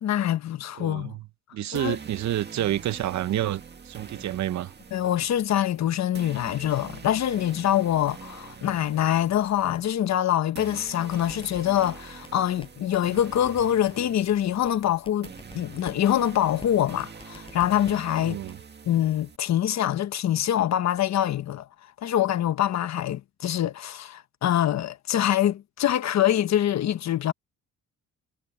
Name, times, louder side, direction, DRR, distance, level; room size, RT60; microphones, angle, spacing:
voice 1, 0.0-1.2 1.7-2.0 4.9-18.4 18.8-21.6 22.0-27.3, left 11 dB, 65° left, 1.2 m, -25 dB
voice 2, 0.8-1.2 1.5-4.7 18.2-18.6, right 13 dB, 65° right, 0.9 m, -29 dB
sound 1, 1.7-19.4, right 5 dB, 35° right, 2.0 m, -45 dB
sound 2, 10.6-11.9 12.2-12.3 12.6-12.7 12.9-13.9 14.2-14.3 14.6-14.7 15.1-15.9 16.2-16.3 16.6-16.7 17.0-17.9 18.2-18.6, left 2 dB, 15° left, 7.5 m, -46 dB
cardioid pair, 90°, 30 cm